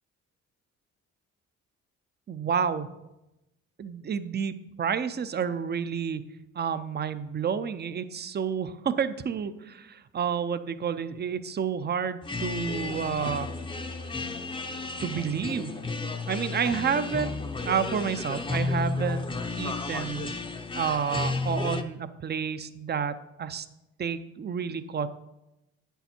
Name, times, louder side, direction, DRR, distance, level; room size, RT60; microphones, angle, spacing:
voice 1, 2.3-2.9 3.8-6.2 6.6-13.5 15.0-15.7 16.3-17.3 17.6-19.3 19.6-20.3 20.7-23.7 24.0-25.1, right 7 dB, 35° right, 12 dB, 0.6 m, -30 dB
sound 1, 12.2-21.8, left 3 dB, 15° left, 0.7 m, -32 dB
9.0 x 7.0 x 4.4 m, 0.93 s
cardioid pair, 90°, 30 cm